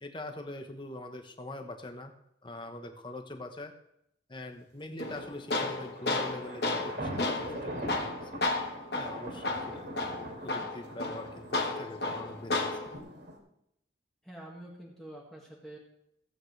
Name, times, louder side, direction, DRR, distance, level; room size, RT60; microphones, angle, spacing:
voice 1, 0.0-2.1 2.4-3.7 4.3-8.5 8.9-12.8, left 1 dB, 25° left, 5 dB, 1.0 m, -43 dB
Tools, 5.0-13.0, left 2 dB, 55° left, 1.2 m, -33 dB
sound 1, 5.8-13.4, right 1 dB, 60° right, 3.0 m, -43 dB
voice 2, 9.1-9.6 14.2-15.8, right 1 dB, ahead, -3 dB, 1.8 m, -47 dB
16.0 x 8.9 x 3.3 m, 0.77 s
head